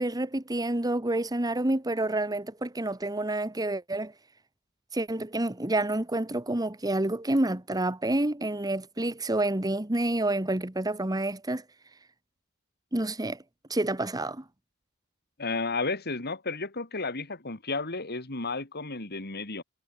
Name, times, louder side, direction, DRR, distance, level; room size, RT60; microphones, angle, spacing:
voice 1, 0.0-4.1 4.9-11.6 12.9-13.4 13.7-14.4, right 1 dB, 15° right, 1.2 m, -28 dB
voice 2, 15.4-19.6, left 3 dB, 45° left, 2.9 m, -32 dB
head